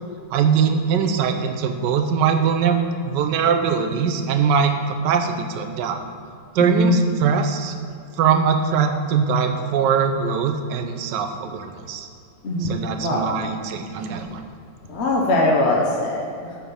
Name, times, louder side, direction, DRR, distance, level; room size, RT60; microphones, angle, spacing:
voice 1, 0.3-6.0 6.5-7.7 8.2-12.1 12.6-14.5, right 6 dB, 85° right, 6 dB, 1.4 m, -21 dB
voice 2, 6.6-6.9 12.4-13.4 14.9-16.5, left 1 dB, 50° left, -1 dB, 1.0 m, -22 dB
6.8 x 5.8 x 6.9 m, 2.3 s
omnidirectional pair, 1.8 m